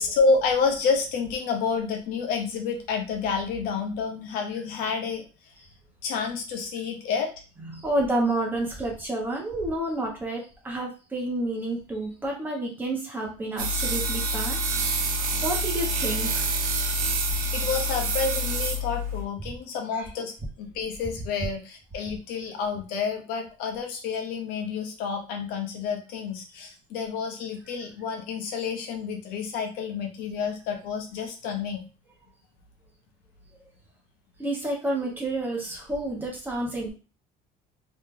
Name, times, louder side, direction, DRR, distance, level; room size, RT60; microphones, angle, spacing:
voice 1, 0.0-5.2 6.0-7.3 17.2-20.3 20.6-31.8, left 5 dB, 65° left, 3 dB, 0.9 m, -29 dB
voice 2, 7.7-14.6 15.2-16.5 19.9-20.0 34.4-36.9, right 1 dB, 10° right, -1 dB, 1.2 m, -29 dB
sound 1, 13.6-19.2, right 1 dB, 65° right, 0.8 m, -27 dB
3.1 x 2.7 x 3.7 m, 0.34 s
cardioid pair, 160°, 16 cm